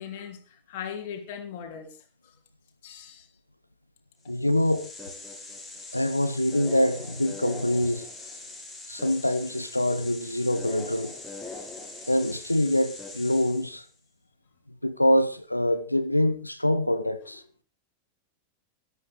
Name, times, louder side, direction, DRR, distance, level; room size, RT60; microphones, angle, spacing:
voice 1, 0.0-2.3 2.8-3.3 17.2-17.4, left 8 dB, 50° left, 3.3 m, -39 dB
voice 2, 4.3-4.9 5.9-8.0 8.9-11.1 12.1-13.8 14.8-17.4, left 1 dB, 85° left, 0.9 m, -25 dB
sound 1, 4.3-13.9, left 3 dB, 5° left, 6.6 m, -41 dB
13.5 x 12.0 x 4.9 m
figure-of-eight pair, 90°, 0 cm